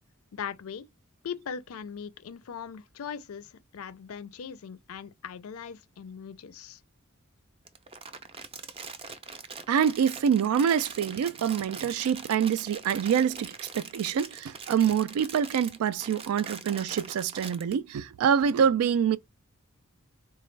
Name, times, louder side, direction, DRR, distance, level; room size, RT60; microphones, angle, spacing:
voice 1, 0.3-0.9 1.2-6.8, left 7 dB, 75° left, 0.4 m, -40 dB
Crumpling crinkling, 7.7-17.7, right 5 dB, 25° right, 0.5 m, -42 dB
voice 2, 9.7-19.2, right 8 dB, 90° right, 0.3 m, -26 dB
4.0 x 2.3 x 3.2 m
head